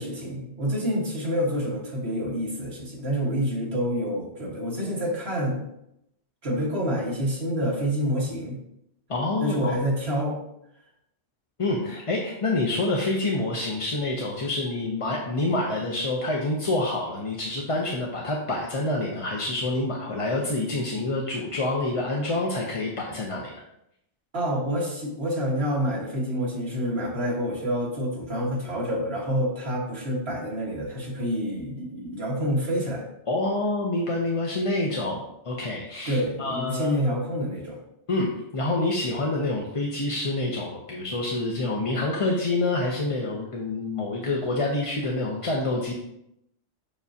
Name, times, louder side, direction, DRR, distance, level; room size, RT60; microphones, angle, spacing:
voice 1, 0.0-5.6 6.4-8.6 9.4-10.4 24.3-33.1 36.1-37.8, equal, 60° right, -3 dB, 1.9 m, -27 dB
voice 2, 9.1-9.8 11.6-23.6 33.3-37.0 38.1-45.9, left 2 dB, 35° left, -2 dB, 0.7 m, -27 dB
6.9 x 6.0 x 2.8 m, 0.80 s
omnidirectional pair, 1.2 m